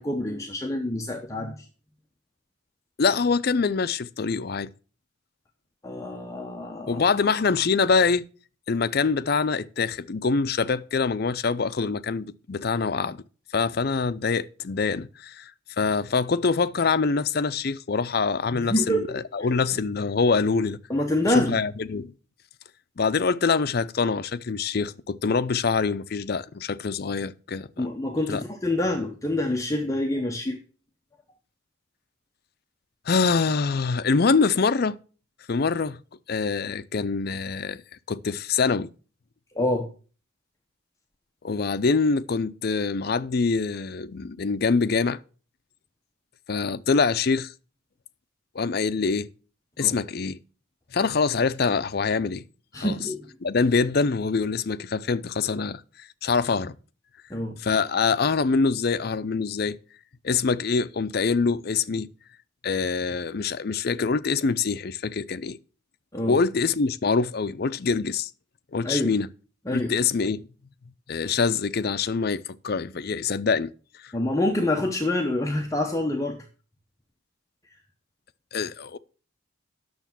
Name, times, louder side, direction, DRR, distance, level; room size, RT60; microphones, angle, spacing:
voice 1, 0.0-1.6 5.8-7.0 18.7-19.5 20.9-21.6 27.8-30.6 39.5-39.9 49.8-50.0 52.7-53.3 57.3-57.6 66.1-66.4 68.8-69.1 69.7-69.9 74.1-76.4, left 1 dB, 15° left, 0.8 m, -26 dB
voice 2, 3.0-4.7 6.9-8.3 8.7-13.2 13.5-15.5 15.8-20.8 21.3-22.1 23.0-27.9 28.3-28.4 33.1-35.0 35.5-36.0 36.3-37.8 38.1-38.9 41.4-45.2 46.5-47.5 48.5-49.3 49.8-50.4 50.9-52.4 52.8-53.0 53.4-56.7 57.6-59.8 60.2-62.1 62.6-65.6 66.3-68.3 68.7-69.3 69.7-70.5 71.1-73.7 74.0-74.1 78.5-79.0, left 4 dB, 50° left, 0.5 m, -25 dB
9.5 x 6.7 x 5.9 m
head